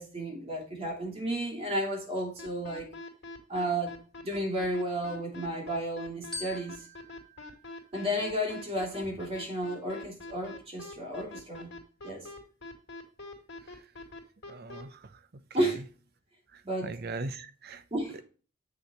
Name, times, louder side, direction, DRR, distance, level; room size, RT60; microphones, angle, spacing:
voice 1, 0.0-2.9 3.5-4.0 4.2-6.9 7.9-11.7 12.0-12.3 15.5-15.8 16.6-17.0 17.9-18.2, right 1 dB, 30° right, 2.9 m, -32 dB
sound 1, 2.4-14.8, left 2 dB, 60° left, 2.5 m, -44 dB
Glockenspiel, 6.3-8.8, left 2 dB, 5° left, 2.0 m, -46 dB
voice 2, 14.5-15.1 16.5-17.8, right 3 dB, 55° right, 0.7 m, -39 dB
7.9 x 6.6 x 3.1 m
head